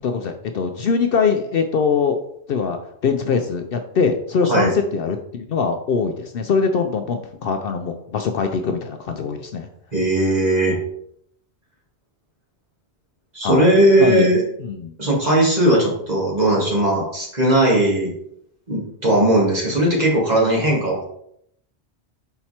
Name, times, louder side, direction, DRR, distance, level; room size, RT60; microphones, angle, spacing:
voice 1, 0.0-2.2 2.5-9.7 13.4-13.7 14.0-14.3 14.6-14.9, left 5 dB, 65° left, 6 dB, 0.7 m, -22 dB
voice 2, 9.9-10.8 13.3-14.4 15.0-18.1 18.7-21.0, right 1 dB, 35° right, -4 dB, 2.3 m, -18 dB
5.7 x 4.4 x 4.2 m, 0.72 s
omnidirectional pair, 1.2 m